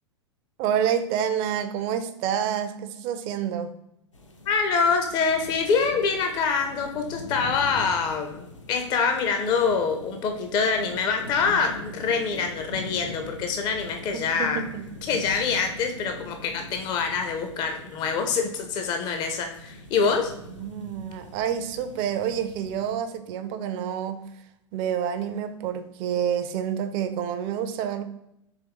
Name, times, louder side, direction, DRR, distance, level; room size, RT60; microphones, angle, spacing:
voice 1, 0.6-3.7 14.1-14.9 15.1-15.2 20.5-24.3 24.7-28.0, right 9 dB, 35° right, 9 dB, 0.4 m, -28 dB
sound 1, 4.1-22.9, left 1 dB, 80° left, 0.7 m, -42 dB
voice 2, 4.5-14.6 15.1-20.3, left 5 dB, 25° left, 4 dB, 0.4 m, -25 dB
4.5 x 3.0 x 3.4 m, 0.81 s
figure-of-eight pair, 95°, 16 cm